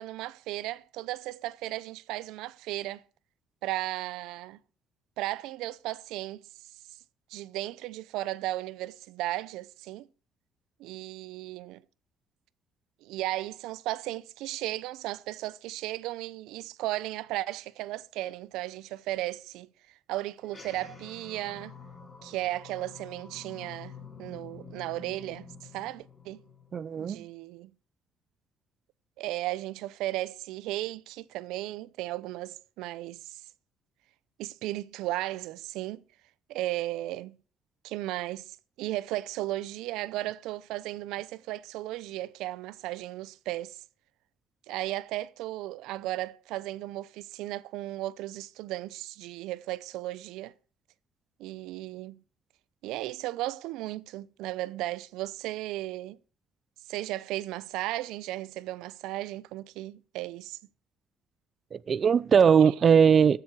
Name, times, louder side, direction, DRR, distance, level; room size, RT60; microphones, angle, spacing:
voice 1, 0.0-3.0 3.6-4.6 5.2-6.5 7.3-10.1 10.8-11.8 13.0-19.7 20.1-21.7 22.2-26.4 27.0-27.7 29.2-33.4 34.4-36.0 36.5-37.4 37.8-43.8 44.7-50.5 51.4-52.2 52.8-56.2 56.9-60.6, right 16 dB, 90° right, 0.6 m, -35 dB
sound 1, 20.4-27.1, left 5 dB, 20° left, 3.5 m, -48 dB
voice 2, 26.7-27.3 61.7-63.4, right 7 dB, 40° right, 0.5 m, -20 dB
14.0 x 7.7 x 6.2 m
cardioid pair, 115°, 0 cm